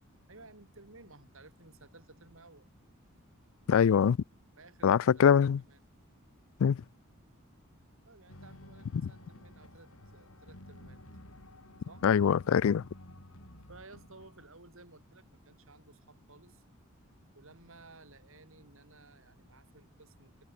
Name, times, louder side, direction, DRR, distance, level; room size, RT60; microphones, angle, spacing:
voice 1, 0.3-2.7 4.6-5.8 8.1-11.0 11.9-12.1 13.7-16.6 17.3-20.4, right 3 dB, 70° right, 5.4 m, -56 dB
voice 2, 3.7-4.2 4.8-5.6 6.6-6.8 9.0-9.1 12.0-12.8, left 7 dB, 70° left, 0.3 m, -23 dB
sound 1, 8.3-14.5, left 1 dB, 90° left, 5.4 m, -53 dB
head